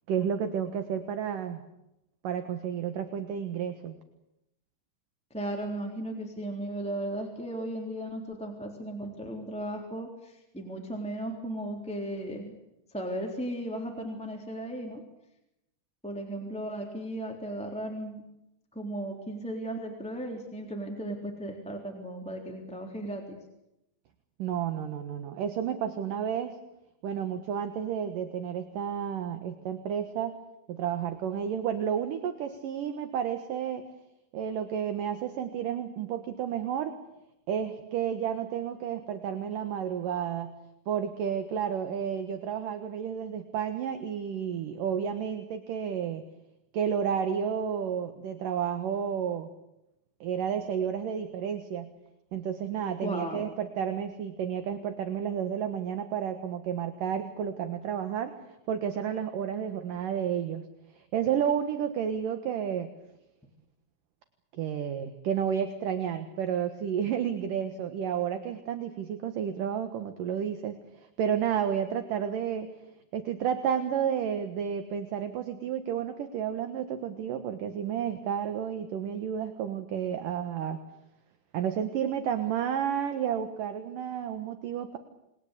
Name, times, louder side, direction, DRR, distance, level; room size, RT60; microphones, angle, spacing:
voice 1, 0.1-1.6 2.2-4.0 24.4-26.6 27.0-30.4 30.7-33.8 34.3-37.0 37.5-40.5 40.9-46.2 46.7-49.5 50.2-51.9 52.3-58.4 58.7-60.6 60.9-62.9 64.5-72.7 73.1-80.8 81.5-85.0, right 8 dB, 65° right, 8 dB, 2.8 m, -31 dB
voice 2, 5.3-12.5 12.9-15.0 16.0-18.2 18.7-23.4 53.0-53.5, right 1 dB, ahead, 1 dB, 3.0 m, -36 dB
28.5 x 21.5 x 8.3 m, 0.87 s
omnidirectional pair, 4.5 m